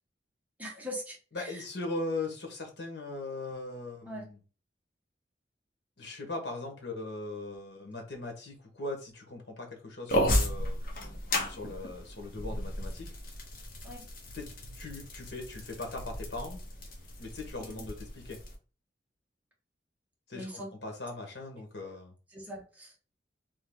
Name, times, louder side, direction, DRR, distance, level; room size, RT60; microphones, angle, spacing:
voice 1, 0.6-1.6 4.1-4.3 13.8-14.0 17.6-17.8 20.3-20.7 21.8-21.9 22.3-22.9, equal, 10° right, -1 dB, 1.2 m, -42 dB
voice 2, 1.3-4.4 6.0-10.9 11.5-13.1 14.3-16.6 17.2-18.4 20.3-22.1, left 2 dB, 85° left, 2 dB, 1.3 m, -39 dB
sound 1, 10.1-18.5, left 1 dB, 55° left, 1.1 m, -34 dB
3.7 x 3.1 x 3.6 m, 0.36 s
head